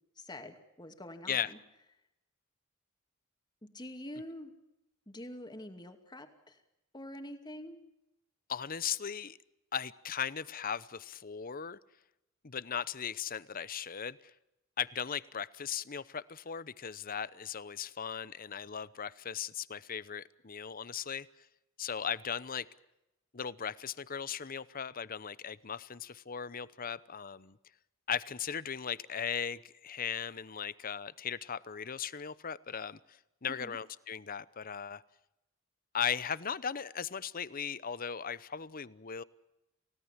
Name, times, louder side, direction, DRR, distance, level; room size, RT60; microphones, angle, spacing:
voice 1, 0.2-1.6 3.6-4.5 5.1-6.6 6.9-7.8 33.5-33.8, left 1 dB, 20° left, 6 dB, 2.5 m, -46 dB
voice 2, 8.5-9.4 9.7-11.8 12.4-14.3 14.8-21.3 21.8-22.7 23.3-27.6 28.1-35.0 35.9-39.2, left 7 dB, 45° left, 17 dB, 0.8 m, -37 dB
29.5 x 17.5 x 7.4 m, 0.90 s
head